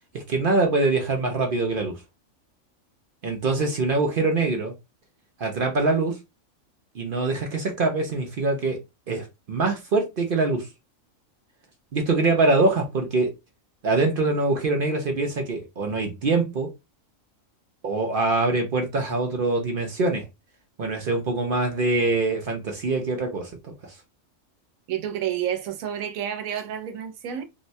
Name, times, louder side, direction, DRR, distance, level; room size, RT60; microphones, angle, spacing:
voice 1, 0.3-1.9 3.2-4.7 5.4-6.2 6.9-8.8 9.1-10.7 11.9-13.3 13.8-16.7 17.8-20.3 20.8-23.9, right 3 dB, 55° right, 0.6 m, -24 dB
voice 2, 24.9-27.4, right 10 dB, 85° right, 1.1 m, -29 dB
3.7 x 2.1 x 2.6 m
omnidirectional pair, 1.4 m